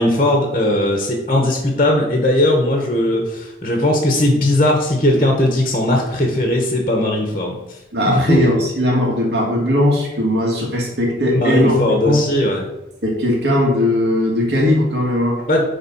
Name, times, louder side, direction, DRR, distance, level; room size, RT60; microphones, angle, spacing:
voice 1, 0.0-7.5 8.1-8.4 11.3-12.6 15.5-15.6, left 1 dB, 30° left, 1 dB, 1.3 m, -18 dB
voice 2, 7.9-12.2 13.0-15.4, left 1 dB, 60° right, -1 dB, 2.5 m, -18 dB
10.5 x 3.8 x 5.6 m, 0.93 s
head